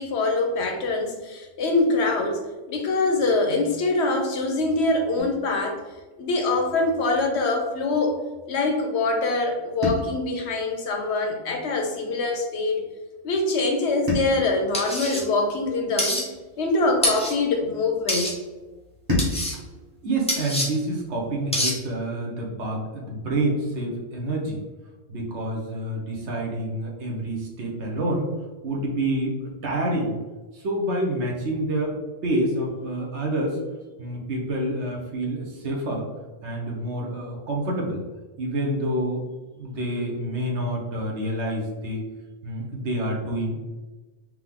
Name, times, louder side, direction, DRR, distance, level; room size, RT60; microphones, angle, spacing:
voice 1, 0.0-5.8 6.2-8.2 8.5-12.8 13.2-16.2 16.6-18.3, left 2 dB, 65° left, 3 dB, 0.8 m, -24 dB
sound 1, 5.2-7.4 9.8-12.2 14.1-16.6 19.1-21.6, left 2 dB, 15° right, 1.1 m, -34 dB
sound 2, 14.7-15.2 16.0-16.2 17.0-17.3 18.1-18.3 19.2-19.5 20.3-20.7 21.5-21.7, left 1 dB, 5° left, 0.6 m, -25 dB
voice 2, 20.0-24.6 25.1-28.3 28.6-30.2 30.5-32.0 32.2-33.6 34.0-36.1 36.4-38.0 38.4-39.3 39.6-42.0 42.4-43.6, right 1 dB, 65° right, -1 dB, 1.1 m, -27 dB
3.7 x 3.0 x 3.6 m, 1.2 s
omnidirectional pair, 1.3 m